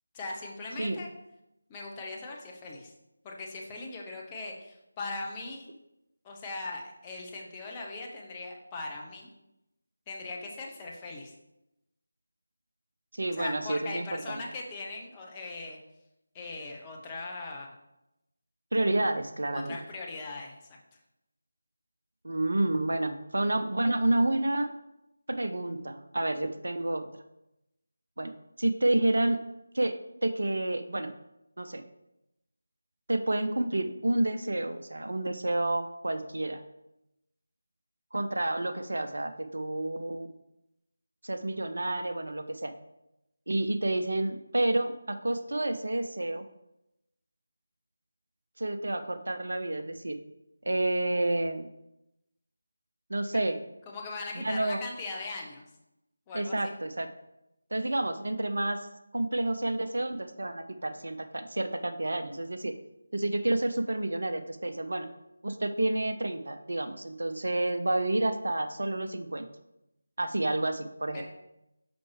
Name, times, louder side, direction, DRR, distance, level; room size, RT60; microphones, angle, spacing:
voice 1, 0.1-1.1 1.7-2.9 3.2-5.7 6.2-9.3 10.1-11.3 13.3-15.8 16.3-17.7 19.5-20.8 53.3-53.4 53.9-55.6 56.3-56.6 71.1-71.2, left 3 dB, 15° left, -1 dB, 0.8 m, -39 dB
voice 2, 13.1-14.4 18.7-19.8 22.2-24.7 25.3-27.2 28.2-28.3 28.6-29.4 29.7-29.9 30.2-31.1 31.6-31.8 33.1-36.6 38.1-40.4 41.2-42.7 43.5-46.4 48.6-50.2 50.6-51.7 53.1-53.6 54.3-54.8 56.3-57.1 57.7-58.8 59.1-62.8 63.1-65.1 65.4-69.5 70.2-71.2, right 1 dB, 65° right, 8 dB, 0.6 m, -29 dB
6.0 x 5.5 x 3.2 m, 0.88 s
figure-of-eight pair, 160°, 0 cm